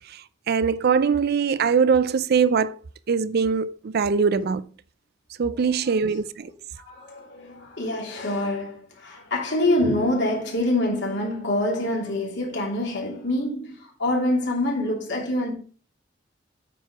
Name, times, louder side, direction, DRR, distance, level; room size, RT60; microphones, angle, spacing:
voice 1, 0.5-2.8 3.1-4.6 5.4-6.5, right 6 dB, 55° right, 0.4 m, -22 dB
voice 2, 5.5-6.0 6.4-6.5 6.8-15.5, left 1 dB, 65° left, 3.0 m, -26 dB
9.0 x 4.7 x 4.9 m
head